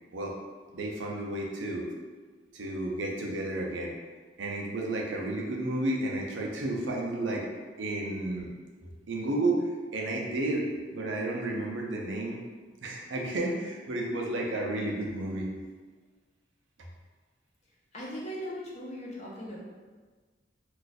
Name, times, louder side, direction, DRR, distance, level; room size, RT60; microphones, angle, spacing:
voice 1, 0.7-1.9 2.5-3.9 4.4-7.4 7.8-8.5 8.8-9.6 9.9-12.4 12.8-15.5, right 2 dB, 85° right, -1 dB, 0.6 m, -32 dB
voice 2, 17.9-19.6, equal, 40° left, -5 dB, 0.7 m, -38 dB
2.4 x 2.4 x 4.0 m, 1.4 s
head